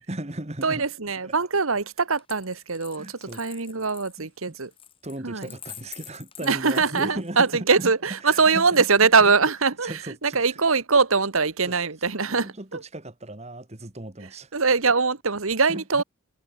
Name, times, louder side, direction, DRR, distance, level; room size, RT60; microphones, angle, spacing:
voice 1, 0.0-0.9 1.2-1.3 2.9-3.4 4.2-4.5 5.0-7.9 8.2-8.9 9.3-9.4 9.6-10.6 11.6-14.5 15.7-16.0, right 1 dB, 30° right, 1.6 m, -37 dB
voice 2, 0.6-3.0 3.3-4.7 5.2-5.5 6.5-12.8 14.5-16.0, right 4 dB, 80° right, 1.5 m, -22 dB
Coin (dropping), 2.2-7.6 8.7-9.4, left 10 dB, 25° left, 1.6 m, -47 dB
head